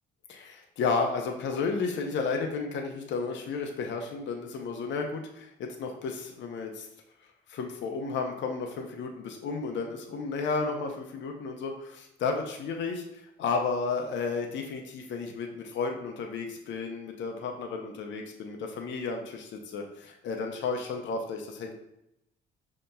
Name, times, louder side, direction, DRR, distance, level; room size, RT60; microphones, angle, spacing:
voice 1, 0.3-6.9 7.5-21.7, left 4 dB, 65° left, 3 dB, 0.6 m, -32 dB
5.2 x 2.9 x 2.2 m, 0.82 s
cardioid pair, 90°, 20 cm